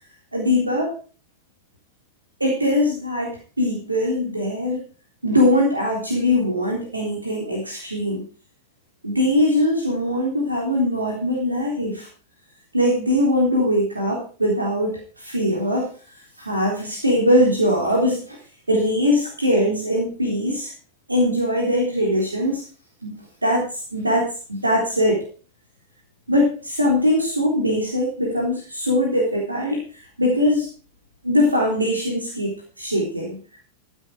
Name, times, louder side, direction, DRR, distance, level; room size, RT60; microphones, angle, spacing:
voice 1, 0.3-0.9 2.4-4.8 5.2-8.2 9.0-12.1 12.7-15.9 16.4-18.4 18.7-20.7 21.1-22.6 23.0-25.2 26.3-30.7 31.2-32.5 32.8-33.4, left 1 dB, 80° right, -2 dB, 3.6 m, -21 dB
14.5 x 9.0 x 5.0 m, 0.37 s
figure-of-eight pair, 90°, 0 cm